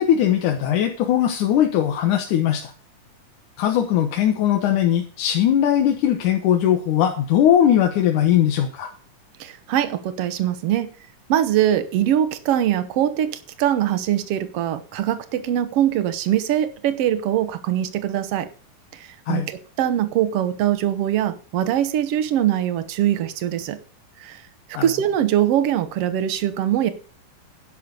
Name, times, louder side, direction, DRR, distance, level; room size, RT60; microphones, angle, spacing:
voice 1, 0.0-2.7 3.6-8.9 19.3-19.5 24.8-24.9, left 10 dB, 70° left, 3 dB, 2.4 m, -19 dB
voice 2, 9.4-10.9 11.3-18.5 19.3-23.8 24.2-24.4 24.8-26.9, right 11 dB, 70° right, 12 dB, 1.4 m, -22 dB
11.5 x 5.7 x 8.0 m, 0.40 s
omnidirectional pair, 3.8 m